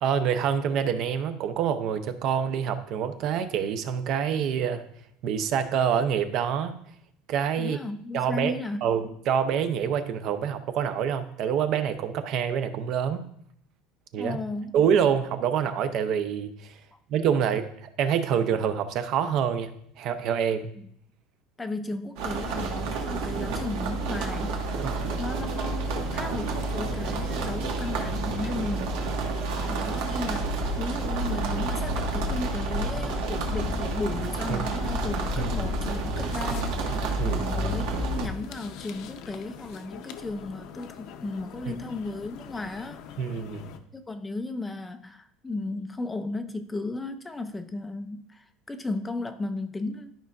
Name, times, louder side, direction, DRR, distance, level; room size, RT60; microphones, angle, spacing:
voice 1, 0.0-4.8 5.2-6.8 7.3-7.8 8.1-8.5 8.8-13.2 14.1-14.4 14.7-16.8 17.1-19.7 20.0-20.7 24.8-25.0 34.5-34.7 35.4-35.5 37.2-37.4 41.7-41.8 43.2-43.7, right 8 dB, 45° right, 10 dB, 0.6 m, -26 dB
voice 2, 7.6-9.0 14.2-14.7 16.9-17.0 20.8-20.9 21.6-24.6 25.2-29.0 29.7-43.0 43.9-50.1, left 2 dB, 10° left, 8 dB, 0.4 m, -35 dB
sound 1, 22.2-38.3, right 2 dB, 70° right, 1.5 m, -29 dB
sound 2, 24.3-43.8, left 8 dB, 55° left, 0.7 m, -44 dB
12.5 x 5.2 x 2.4 m, 0.68 s
cardioid pair, 155°, 0 cm